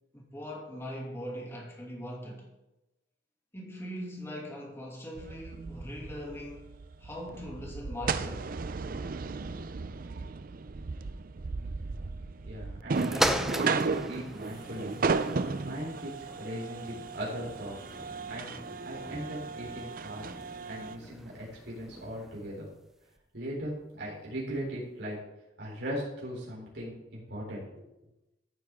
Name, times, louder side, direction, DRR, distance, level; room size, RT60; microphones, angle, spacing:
voice 1, 0.1-2.5 3.5-6.7 7.0-8.5, equal, 15° left, 2.6 m, -41 dB
sound 1, 5.2-21.0, right 4 dB, 50° right, 0.5 m, -35 dB
voice 2, 12.4-16.1 16.4-17.9 18.2-18.5 18.8-20.3 20.6-22.7 23.3-25.2 25.6-27.8, equal, 75° right, 3.8 m, -39 dB
sound 2, 12.9-22.5 23.2-23.3, equal, ahead, 0.6 m, -38 dB
14.0 x 9.2 x 3.7 m
head